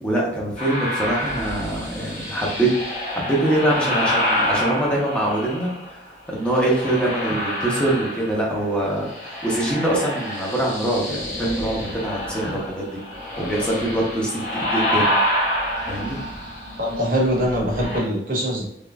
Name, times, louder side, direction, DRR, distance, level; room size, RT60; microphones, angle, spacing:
voice 1, 0.0-13.0 13.4-15.1 15.9-16.2, right 1 dB, 5° left, -4 dB, 0.8 m, -24 dB
sound 1, 0.6-5.9 6.4-8.6 8.9-18.0, left 1 dB, 40° left, 1.3 m, -27 dB
voice 2, 16.8-18.7, equal, 50° right, -2 dB, 1.0 m, -23 dB
3.7 x 2.9 x 2.3 m, 0.77 s
head